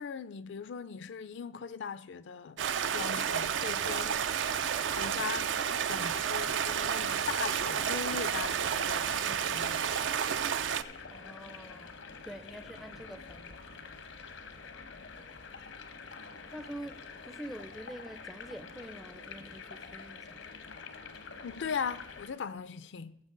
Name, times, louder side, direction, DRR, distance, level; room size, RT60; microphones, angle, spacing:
voice 1, 0.0-2.6 2.9-4.3 5.0-5.5 5.9-9.9 21.4-23.2, left 6 dB, 65° left, 0.4 m, -39 dB
Stream, 2.6-10.8, right 8 dB, 75° right, 0.4 m, -31 dB
sound 1, 3.3-22.3, left 4 dB, 90° left, 1.1 m, -47 dB
voice 2, 11.1-13.6 16.5-20.5, right 1 dB, ahead, 0.4 m, -46 dB
17.5 x 7.0 x 3.8 m
head